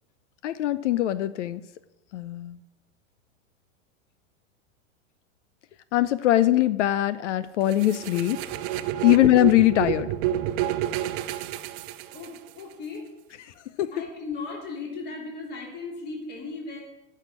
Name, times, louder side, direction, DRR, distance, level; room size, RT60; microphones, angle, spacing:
voice 1, 0.4-1.6 2.1-2.6 5.9-8.4 9.0-10.1 13.8-13.9, left 14 dB, 70° left, 15 dB, 0.7 m, -21 dB
sound 1, 7.7-12.6, right 12 dB, 40° right, 0.8 m, -29 dB
voice 2, 12.0-13.1 13.9-16.8, left 4 dB, 25° left, -1 dB, 3.1 m, -37 dB
11.5 x 6.6 x 9.4 m, 0.98 s
hypercardioid pair, 135°, 38 cm